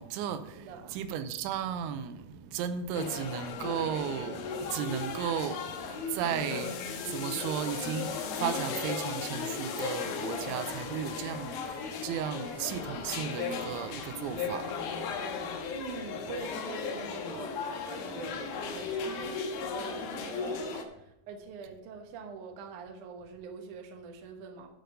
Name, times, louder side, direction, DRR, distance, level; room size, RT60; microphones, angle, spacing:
voice 1, 0.0-5.8 6.1-14.9, right 9 dB, 90° right, 3.0 m, -35 dB
voice 2, 0.6-1.0 15.7-24.7, right 5 dB, 70° right, 1.9 m, -44 dB
sound 1, 2.9-20.8, left 5 dB, 70° left, 2.4 m, -36 dB
11.0 x 6.5 x 5.1 m
omnidirectional pair, 5.4 m